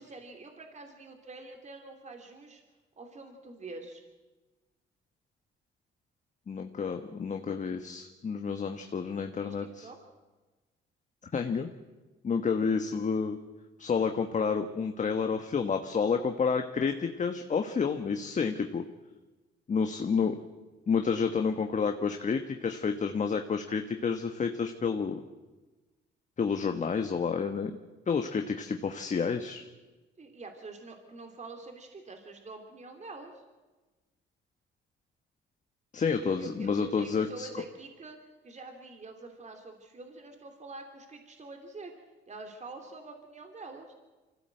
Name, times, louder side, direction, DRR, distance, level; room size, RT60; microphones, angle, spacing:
voice 1, 0.0-2.6 3.0-4.0 9.4-10.0 30.2-33.4 36.2-38.2 38.4-41.9 42.3-43.9, right 3 dB, 35° right, 4 dB, 3.1 m, -46 dB
voice 2, 6.5-9.9 11.3-11.7 12.2-13.4 13.8-18.8 19.7-20.4 20.9-25.2 26.4-27.7 28.1-29.6 35.9-37.5, left 5 dB, 40° left, 6 dB, 1.3 m, -30 dB
24.5 x 16.0 x 7.9 m, 1.2 s
cardioid pair, 90°, 20 cm